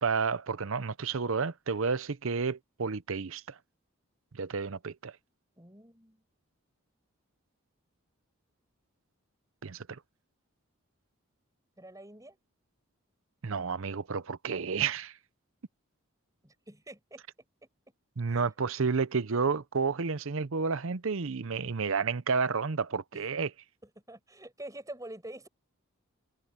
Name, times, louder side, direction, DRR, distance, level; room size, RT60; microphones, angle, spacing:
voice 1, 0.0-3.6 4.3-5.1 9.6-10.0 13.4-15.1 18.2-23.5, right 5 dB, 65° right, 0.7 m, -31 dB
voice 2, 5.6-6.2 11.8-12.4 16.4-17.2 18.2-18.4 23.1-23.3 23.8-25.5, right 1 dB, 15° right, 5.7 m, -46 dB
head